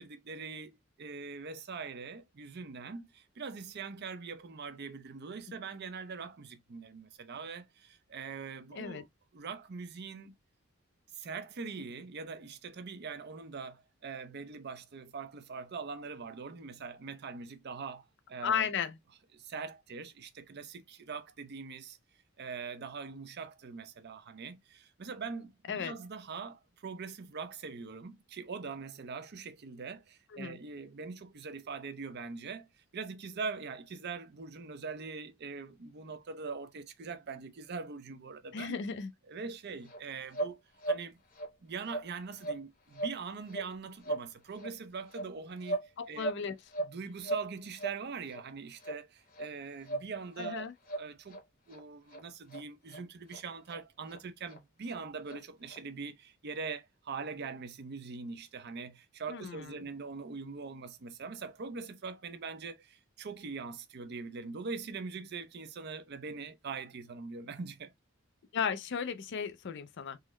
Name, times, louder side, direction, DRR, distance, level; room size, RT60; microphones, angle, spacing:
voice 1, 0.0-9.1 9.3-10.3 11.1-18.7 19.3-22.0 22.4-38.8 39.3-40.6 40.9-41.2 41.6-46.3 46.8-50.7 50.9-51.4 51.7-67.9, right 5 dB, 55° right, 0.6 m, -42 dB
voice 2, 8.7-9.0 18.4-19.0 25.7-25.9 30.3-30.6 38.5-39.1 46.0-46.5 50.4-50.7 59.3-59.7 68.5-70.2, left 7 dB, 60° left, 0.5 m, -35 dB
sound 1, 39.8-40.0 40.3-40.5 40.8-41.0 41.3-41.5 41.8-42.1 42.4-42.6 42.9-43.2 43.5-43.7 44.0-44.3 44.5-44.7 45.1-45.9 46.1-46.9 47.2-47.5 47.7-48.0 48.3-48.4 48.8-49.0 49.3-49.5 49.8-50.1 50.4-50.6 50.8-51.4 51.7-51.8 52.1-52.2 52.5-52.6 52.9-53.0 53.3-53.4 53.7-53.8 54.1-54.2 54.5-54.6 54.9-55.0 55.3-55.4 55.7-55.8, right 2 dB, 45° left, 0.9 m, -37 dB
3.7 x 2.0 x 3.0 m
head